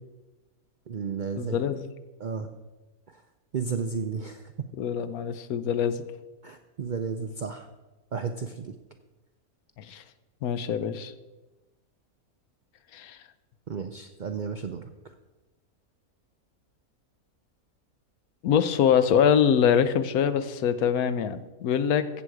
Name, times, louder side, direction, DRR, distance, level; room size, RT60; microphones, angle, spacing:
voice 1, 0.9-1.5 2.2-2.5 3.5-4.7 6.4-7.6 8.1-8.7 13.7-14.8, right 5 dB, 65° right, 7 dB, 0.4 m, -33 dB
voice 2, 1.4-1.9 4.8-6.0 9.8-10.0 10.4-11.1 12.9-13.2 18.4-22.1, left 8 dB, 80° left, 12 dB, 1.2 m, -24 dB
14.5 x 7.8 x 4.8 m, 1.1 s
omnidirectional pair, 1.5 m